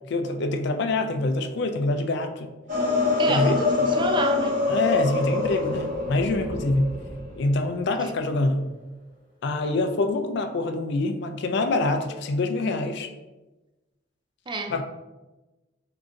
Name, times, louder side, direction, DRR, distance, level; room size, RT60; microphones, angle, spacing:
voice 1, 0.1-2.5 3.3-3.6 4.7-6.9 7.4-8.7 9.4-13.1 14.7-14.8, left 2 dB, 65° left, 7 dB, 0.4 m, -25 dB
sound 1, 2.7-7.5, left 3 dB, 45° right, 1.0 m, -25 dB
voice 2, 3.2-4.6 14.5-14.8, right 2 dB, 25° right, 5 dB, 0.4 m, -28 dB
3.7 x 2.6 x 3.8 m, 1.1 s
head